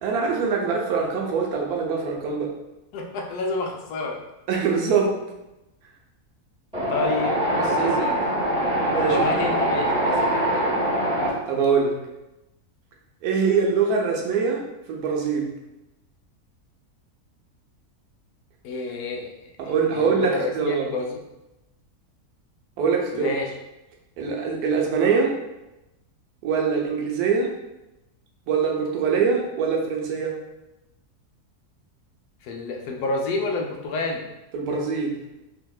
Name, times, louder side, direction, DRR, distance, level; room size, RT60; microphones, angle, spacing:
voice 1, 0.0-2.5 4.5-5.2 7.7-8.1 8.9-9.3 11.5-12.0 13.2-14.6 14.9-15.5 19.6-20.9 22.8-23.4 24.2-25.3 26.4-27.5 28.5-30.3 34.5-35.2, right 5 dB, 80° right, 0 dB, 1.1 m, -23 dB
voice 2, 2.9-4.2 6.9-8.2 9.1-10.7 18.6-21.2 23.1-23.5 32.4-34.2, left 3 dB, 80° left, 1 dB, 1.1 m, -29 dB
Wind, 6.7-11.3, equal, 5° right, 1.2 m, -23 dB
3.5 x 2.6 x 2.3 m, 0.96 s
omnidirectional pair, 1.6 m